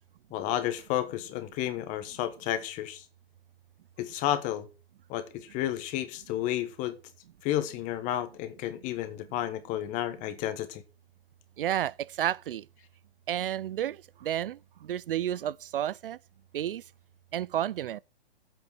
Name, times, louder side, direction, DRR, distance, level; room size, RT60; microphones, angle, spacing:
voice 1, 0.3-3.0 4.0-4.7 5.1-7.0 7.4-10.8, left 12 dB, 25° left, 1.2 m, -31 dB
voice 2, 11.6-12.7 13.3-16.2 16.5-16.8 17.3-18.0, right 11 dB, 65° right, 0.5 m, -31 dB
7.9 x 7.0 x 8.3 m
hypercardioid pair, 135°, 30 cm